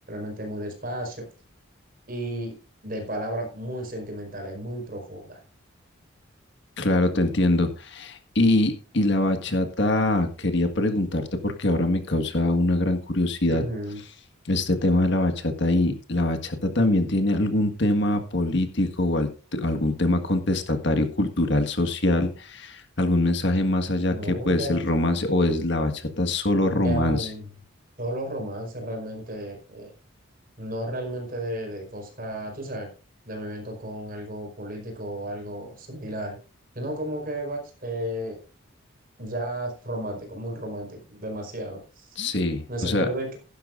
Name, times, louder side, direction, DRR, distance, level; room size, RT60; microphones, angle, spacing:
voice 1, 0.1-1.2 2.1-2.6 2.8-5.4 13.5-14.0 24.1-24.8 26.7-27.5 28.0-29.9 30.6-32.9 33.3-36.4 36.7-38.4 39.2-42.2 42.7-43.4, right 1 dB, 40° right, 2 dB, 4.8 m, -33 dB
voice 2, 6.8-13.6 14.4-27.3 42.2-43.1, left 1 dB, 55° left, 6 dB, 1.7 m, -23 dB
16.0 x 12.0 x 2.6 m, 0.35 s
head